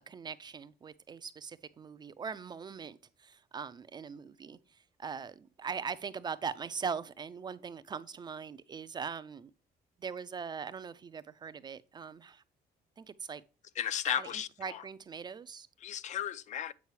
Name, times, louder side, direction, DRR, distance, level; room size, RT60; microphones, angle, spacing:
voice 1, 0.0-4.6 5.0-9.5 10.0-12.4 13.0-13.4 14.2-15.7, right 6 dB, 25° right, 0.3 m, -41 dB
voice 2, 13.8-14.8 15.8-16.7, left 9 dB, 45° left, 0.4 m, -34 dB
8.1 x 5.3 x 3.1 m
cardioid pair, 155°, 17 cm